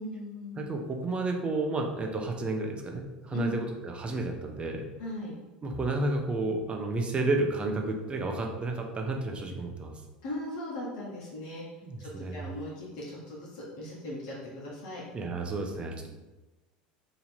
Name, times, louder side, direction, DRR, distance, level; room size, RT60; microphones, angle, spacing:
voice 1, 0.0-0.7 3.3-3.5 5.0-5.4 10.2-11.8 12.2-15.0, left 1 dB, 70° left, -5 dB, 1.0 m, -38 dB
voice 2, 0.6-4.9 5.6-9.9 11.8-12.4 15.1-15.9, right 2 dB, 25° right, 2 dB, 0.7 m, -31 dB
2.9 x 2.7 x 4.3 m, 1.1 s
hypercardioid pair, 85°, 4 cm